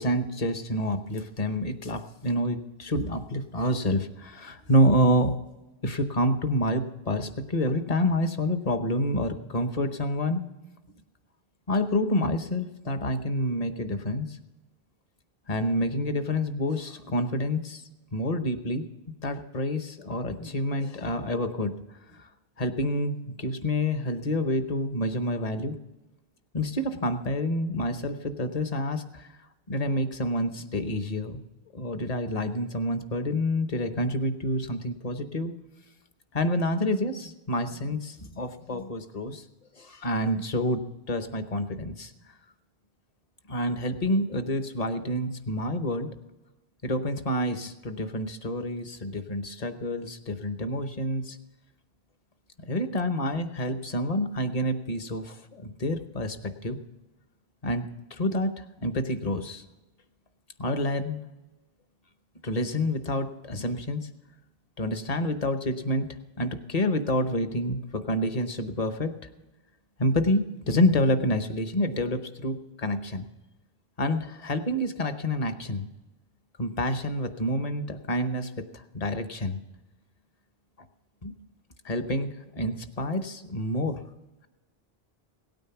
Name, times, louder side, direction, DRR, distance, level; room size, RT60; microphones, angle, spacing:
voice 1, 0.0-5.3 5.8-10.4 11.7-14.4 15.5-17.8 18.1-18.8 19.2-21.7 22.1-22.2 22.6-25.8 26.5-29.3 29.7-31.4 31.7-35.5 36.3-39.4 39.8-40.8 41.1-42.1 43.5-46.1 46.8-51.4 52.7-56.8 57.6-59.6 60.6-61.2 62.4-64.1 64.8-69.1 70.0-73.3 74.0-75.8 76.6-79.6 81.2-81.3 81.8-84.0, equal, 40° left, 9 dB, 0.9 m, -28 dB
17.0 x 9.2 x 5.8 m, 1.1 s
omnidirectional pair, 1.0 m